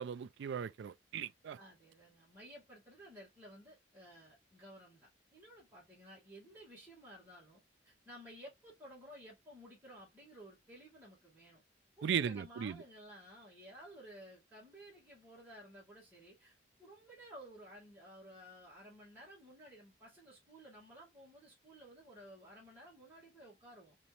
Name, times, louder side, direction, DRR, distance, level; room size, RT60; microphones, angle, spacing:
voice 1, 0.0-1.6 12.0-12.8, right 8 dB, 65° right, 0.3 m, -37 dB
voice 2, 1.6-11.6 12.0-24.0, equal, 10° right, 2.1 m, -55 dB
4.1 x 3.0 x 2.5 m
head